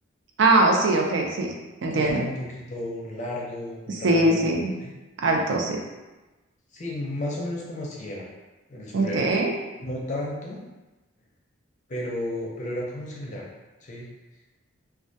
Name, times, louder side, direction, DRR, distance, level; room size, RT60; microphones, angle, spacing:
voice 1, 0.4-1.5 1.8-2.2 4.0-4.7 5.2-5.8 8.9-9.5, right 2 dB, 70° right, 1 dB, 0.4 m, -21 dB
voice 2, 1.9-4.9 6.7-8.3 8.7-9.3 9.8-10.6 11.9-13.5 13.8-14.1, left 1 dB, 35° left, -3 dB, 0.5 m, -33 dB
2.2 x 2.2 x 2.6 m, 1.1 s
head